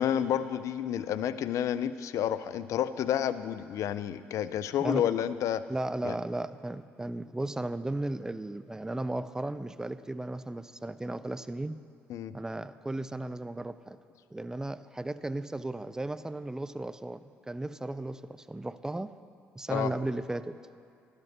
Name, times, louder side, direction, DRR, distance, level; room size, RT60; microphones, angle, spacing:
voice 1, 0.0-5.6 6.0-6.1 12.1-12.3 19.7-19.9, left 10 dB, 65° left, 14 dB, 0.4 m, -30 dB
voice 2, 5.7-11.8 12.3-14.0 14.3-19.1 19.5-20.6, right 2 dB, 10° right, 14 dB, 0.4 m, -35 dB
12.0 x 5.2 x 6.1 m, 2.5 s
hypercardioid pair, 55°, 6 cm